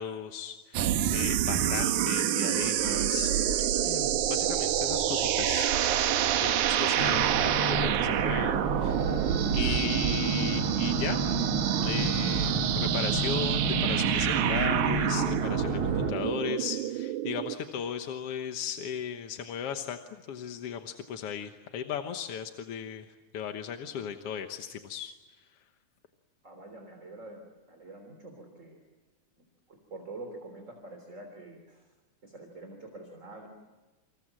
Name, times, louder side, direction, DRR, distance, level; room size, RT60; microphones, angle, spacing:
voice 1, 0.0-3.3 3.8-5.7 6.4-9.0 9.5-11.2 11.8-23.1 23.3-25.6, left 8 dB, 60° left, 6 dB, 2.0 m, -36 dB
sound 1, 0.7-17.6, right 11 dB, 80° right, 2.5 m, -27 dB
sound 2, 7.0-16.1, right 2 dB, 45° right, 2.6 m, -31 dB
voice 2, 26.4-28.8 29.7-31.9 32.2-33.5, right 2 dB, 25° right, 4 dB, 3.6 m, -46 dB
29.0 x 27.0 x 7.6 m, 1.2 s
omnidirectional pair, 3.4 m